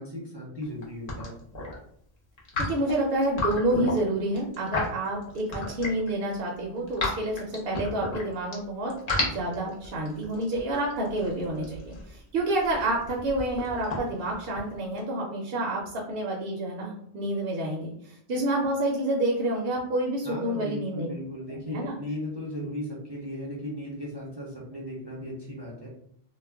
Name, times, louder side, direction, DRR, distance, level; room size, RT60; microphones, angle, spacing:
voice 1, 0.0-1.3 20.2-25.9, equal, 35° right, -5 dB, 0.5 m, -36 dB
sound 1, 0.6-1.7 2.4-6.1 6.5-8.5 8.9-15.0, left 2 dB, 45° left, 0.7 m, -33 dB
voice 2, 2.7-8.9 9.2-21.1 21.5-21.9, right 1 dB, 65° right, -2 dB, 0.7 m, -28 dB
2.3 x 2.1 x 3.3 m, 0.68 s
omnidirectional pair, 1.1 m